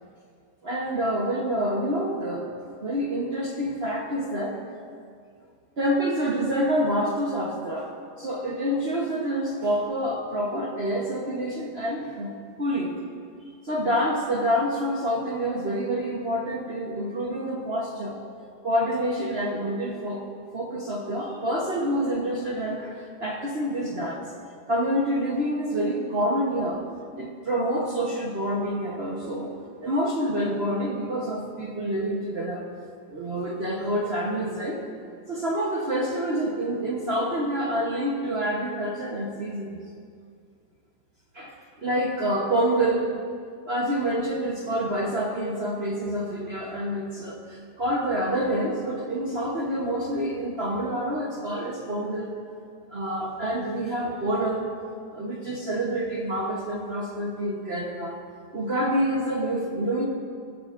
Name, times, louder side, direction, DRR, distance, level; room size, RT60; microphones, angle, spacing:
voice 1, 0.6-2.4 2.8-4.6 5.8-7.9 8.2-12.3 12.6-13.0 13.6-18.2 18.6-20.2 20.5-24.2 24.7-26.8 27.2-29.5 29.8-32.7 33.1-34.8 35.3-39.8 41.3-43.2 43.6-52.3 52.9-54.7 55.1-58.2 58.5-60.1, equal, 40° right, -1 dB, 0.9 m, -27 dB
16.0 x 16.0 x 2.5 m, 2.2 s
omnidirectional pair, 2.2 m